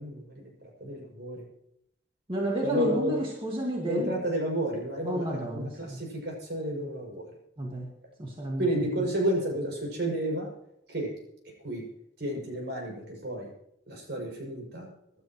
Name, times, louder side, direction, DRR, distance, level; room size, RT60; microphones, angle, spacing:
voice 1, 0.0-1.4 2.6-3.2 3.9-7.3 8.6-10.5 10.9-11.1 11.6-11.8 12.2-13.5 13.9-14.9, right 1 dB, 65° right, 0 dB, 7.2 m, -31 dB
voice 2, 2.3-4.2 5.0-6.0 7.6-7.9 8.2-8.7 9.0-9.1, right 1 dB, 30° right, -1 dB, 2.0 m, -31 dB
26.5 x 12.0 x 3.2 m, 0.76 s
head